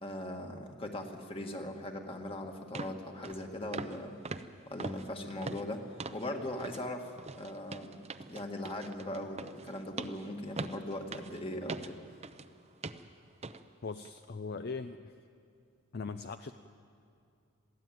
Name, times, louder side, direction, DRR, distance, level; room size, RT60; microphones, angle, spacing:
voice 1, 0.0-4.2 4.7-8.0 8.3-12.0, left 1 dB, 25° left, 3 dB, 1.8 m, -40 dB
sound 1, 2.1-2.2 2.7-3.0 3.2-3.4 3.7-4.0 4.2-6.3 6.6-6.8 7.2-12.5 12.8-13.1 13.4-13.6 14.0-14.2, right 3 dB, 30° right, 0.7 m, -42 dB
voice 2, 13.8-15.1 15.9-16.5, left 4 dB, 50° left, 9 dB, 0.5 m, -40 dB
21.5 x 15.5 x 9.2 m, 2.5 s
head